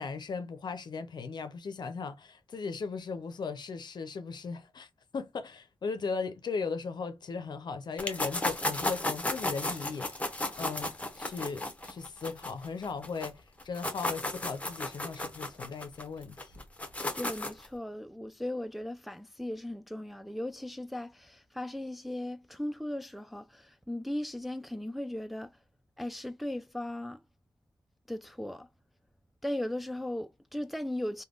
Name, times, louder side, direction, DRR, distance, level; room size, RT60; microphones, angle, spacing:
voice 1, 0.0-10.3 10.6-16.5, left 5 dB, 60° left, 0.6 m, -37 dB
sound 1, 8.0-13.3 13.6-17.7, left 2 dB, 15° left, 0.9 m, -34 dB
voice 2, 17.1-25.6 26.0-27.2 28.1-28.7 29.4-31.2, left 1 dB, ahead, 0.4 m, -37 dB
3.4 x 2.2 x 2.4 m
cardioid pair, 75°, 8 cm